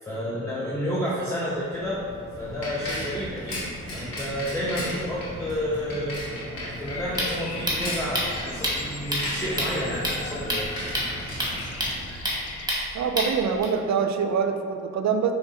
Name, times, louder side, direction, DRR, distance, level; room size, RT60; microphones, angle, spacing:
voice 1, 0.0-2.0 2.4-3.6 3.9-6.3 6.6-10.7, equal, 10° left, -7 dB, 0.7 m, -30 dB
Bicycle, 1.6-12.5, equal, 80° left, 1.2 m, -36 dB
sound 1, 6.7-13.6, equal, 10° right, 1.5 m, -30 dB
Bird vocalization bird call bird song, 6.8-12.7, left 4 dB, 45° left, 0.5 m, -41 dB
voice 2, 12.9-15.3, right 6 dB, 55° right, 6 dB, 0.4 m, -24 dB
4.8 x 2.8 x 2.7 m, 2.3 s
supercardioid pair, 40°, 35 cm